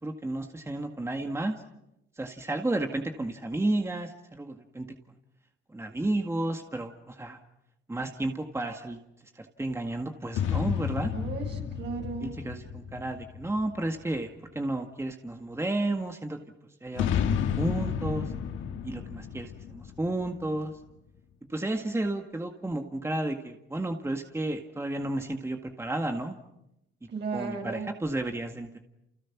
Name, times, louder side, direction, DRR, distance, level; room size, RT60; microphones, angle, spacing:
voice 1, 0.0-1.6 2.2-4.9 5.7-7.4 7.9-9.0 9.4-11.1 12.2-14.3 14.6-16.4 16.8-18.3 18.8-20.7 21.5-26.4 27.3-28.8, right 2 dB, 15° right, 4 dB, 1.9 m, -32 dB
sound 1, 10.3-14.0 16.9-20.7, left 8 dB, 85° left, 1.9 m, -31 dB
voice 2, 11.1-12.3 27.1-27.9, right 5 dB, 60° right, 3 dB, 7.8 m, -35 dB
30.0 x 29.5 x 6.1 m, 0.88 s
cardioid pair, 90°, 20 cm